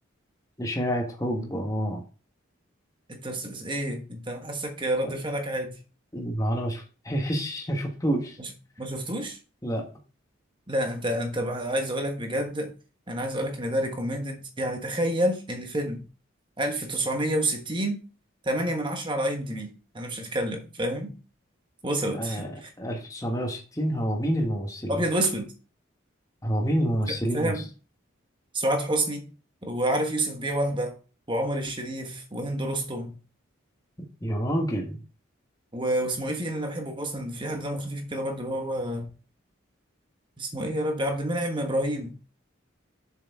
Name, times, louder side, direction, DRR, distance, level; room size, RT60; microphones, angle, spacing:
voice 1, 0.6-2.0 5.0-5.1 6.1-8.4 9.6-9.8 22.1-22.5 22.8-25.0 26.4-27.5 34.2-35.0, equal, 15° left, 1.3 m, -28 dB
voice 2, 3.1-5.8 8.4-8.5 8.8-9.4 10.7-12.7 13.1-16.0 16.6-18.0 18.4-19.7 19.9-21.1 21.8-22.7 24.9-25.5 27.1-27.7 28.5-29.2 29.6-31.0 31.3-33.2 35.7-39.1 40.4-42.1, right 1 dB, 25° right, 1.3 m, -29 dB
7.0 x 6.6 x 3.6 m
head